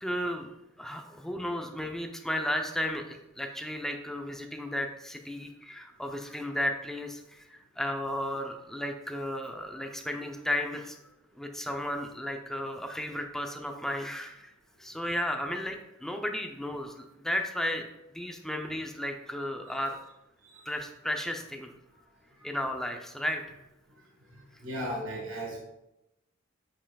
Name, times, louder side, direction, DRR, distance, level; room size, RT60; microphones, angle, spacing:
voice 1, 0.0-0.5 0.8-11.0 11.4-14.5 14.8-17.8 18.1-20.0 20.7-21.7 22.4-23.4, left 1 dB, ahead, 4 dB, 0.5 m, -34 dB
voice 2, 24.3-25.6, equal, 80° right, -1 dB, 1.3 m, -36 dB
8.6 x 5.5 x 2.3 m, 0.91 s
head